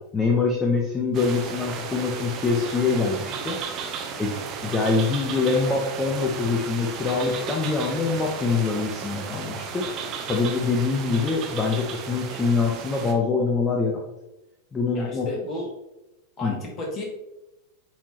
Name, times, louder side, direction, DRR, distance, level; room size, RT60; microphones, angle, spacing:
voice 1, 0.0-3.6 4.2-4.3 4.6-9.8 10.3-14.0 14.7-15.3 16.4-16.5, left 4 dB, 15° left, 0 dB, 0.9 m, -24 dB
sound 1, 1.1-13.1, right 6 dB, 35° right, 0.8 m, -34 dB
voice 2, 14.9-15.7 16.4-17.0, left 2 dB, 30° left, 0 dB, 1.3 m, -33 dB
8.6 x 3.7 x 2.9 m, 0.94 s
figure-of-eight pair, 90°, 0 cm